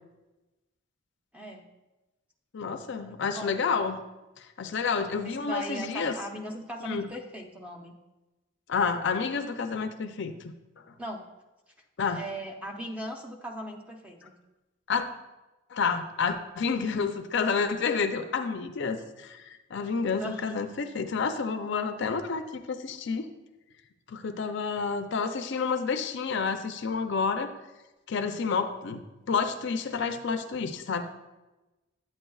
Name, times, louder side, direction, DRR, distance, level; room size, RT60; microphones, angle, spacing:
voice 1, 2.5-4.0 4.4-6.1 6.8-7.1 8.7-10.3 12.0-12.2 14.9-15.1 15.7-23.3 24.1-27.5 28.1-31.0, left 5 dB, 60° left, 8 dB, 0.4 m, -29 dB
voice 2, 3.1-3.6 5.2-8.0 11.0-11.2 12.1-14.3 20.0-20.6, equal, 5° right, 1 dB, 0.6 m, -38 dB
8.9 x 8.5 x 2.3 m, 1.1 s
head